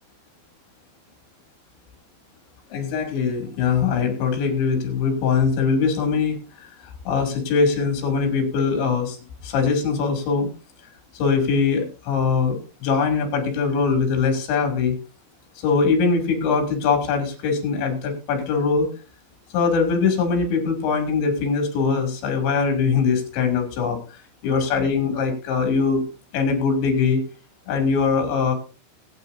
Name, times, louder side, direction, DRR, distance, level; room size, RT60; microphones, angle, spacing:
voice 1, 2.7-6.4 7.1-9.2 9.4-10.5 11.1-14.9 15.6-18.9 19.5-24.0 24.4-26.1 26.3-27.2 27.7-28.5, left 5 dB, 65° left, 4 dB, 5.0 m, -22 dB
21.5 x 9.4 x 2.7 m, 0.32 s
omnidirectional pair, 5.8 m